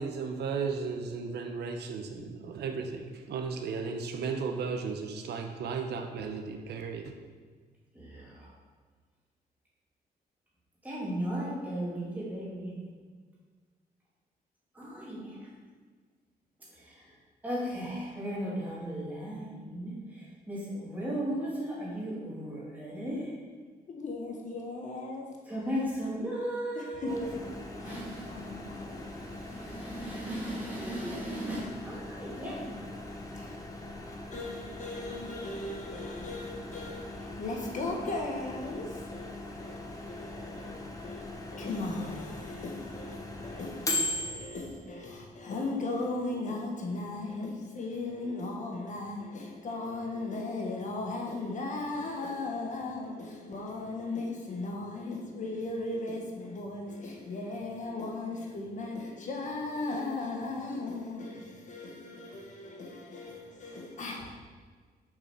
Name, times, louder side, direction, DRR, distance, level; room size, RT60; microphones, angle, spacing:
voice 1, 0.0-7.1, right 5 dB, 90° right, 0.9 m, -35 dB
voice 2, 7.9-8.5 10.8-12.9 14.7-15.5 16.7-17.1 17.4-23.4 25.5-27.2 27.8-32.8, equal, 10° right, 2.6 m, -36 dB
voice 3, 23.9-25.2 26.7-27.4 27.8-29.0 33.3-33.6 34.3-64.4, left 2 dB, 50° left, 1.3 m, -37 dB
Microwave oven, 27.1-44.8, left 2 dB, 20° left, 0.9 m, -40 dB
6.9 x 6.0 x 6.0 m
wide cardioid pair, 165°, 17 cm